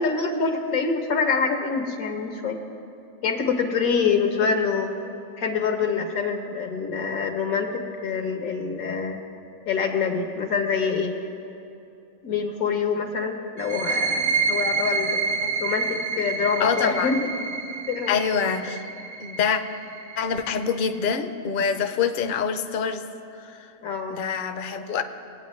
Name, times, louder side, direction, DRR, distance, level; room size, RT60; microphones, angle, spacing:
voice 1, 0.0-2.6 3.2-4.9 5.4-9.2 9.7-11.1 12.2-15.2 15.6-17.3 17.9-18.2 23.8-24.2, left 5 dB, 90° left, 3 dB, 1.5 m, -25 dB
sound 1, 13.6-21.0, right 4 dB, 60° right, 0.8 m, -28 dB
voice 2, 16.6-17.1 18.1-18.8 19.2-19.6 20.2-23.0 23.3-23.7 24.1-25.0, left 6 dB, 55° left, 9 dB, 0.6 m, -25 dB
20.5 x 8.9 x 3.1 m, 2.8 s
omnidirectional pair, 1.4 m